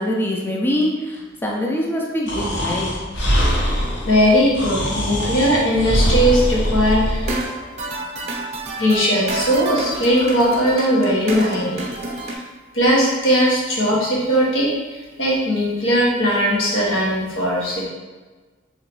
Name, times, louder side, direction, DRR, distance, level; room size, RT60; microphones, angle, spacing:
voice 1, 0.0-2.9, equal, 10° left, -1 dB, 0.4 m, -23 dB
Breathing, 2.3-7.4, equal, 65° left, 1.0 m, -22 dB
voice 2, 3.5-3.8 4.0-7.4 8.8-11.9 12.3-12.4 12.7-14.8 15.2-17.9, equal, 90° left, -5 dB, 1.1 m, -19 dB
sound 1, 7.2-12.3, right 2 dB, 35° right, 0.6 m, -29 dB
3.7 x 3.0 x 3.1 m, 1.3 s
head